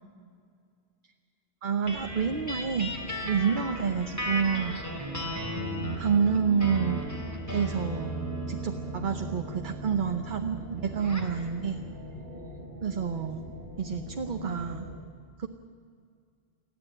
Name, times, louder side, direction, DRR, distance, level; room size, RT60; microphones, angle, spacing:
voice 1, 1.6-3.0 3.2-4.8 6.0-7.0 7.5-8.1 8.5-11.8 12.8-13.4 13.8-14.9 15.4-15.5, right 6 dB, 55° right, 5 dB, 0.9 m, -28 dB
sound 1, 1.8-14.9, left 1 dB, 55° left, 4.3 m, -42 dB
sound 2, 1.9-11.4, right 1 dB, 15° left, 2.8 m, -36 dB
29.0 x 10.0 x 8.8 m, 2.2 s
omnidirectional pair, 1.0 m